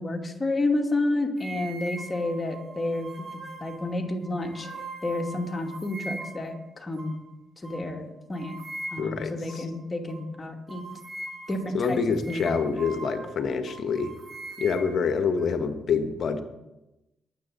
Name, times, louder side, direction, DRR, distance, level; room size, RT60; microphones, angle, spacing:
voice 1, 0.0-4.7 5.0-7.2 7.6-8.6 8.9-10.9 11.5-12.0 12.3-12.5, left 2 dB, 30° left, 2 dB, 2.6 m, -30 dB
sound 1, 1.4-6.5 7.0-7.2 7.6-7.8 8.3-9.2 9.5-9.7 10.1-10.2 10.7-13.4 13.7-15.5, right 2 dB, 20° right, 2.8 m, -41 dB
voice 2, 9.0-9.6 11.7-14.1 14.6-16.4, left 5 dB, 60° left, 9 dB, 1.4 m, -26 dB
22.5 x 7.7 x 4.1 m, 0.97 s
hypercardioid pair, 40°, 0 cm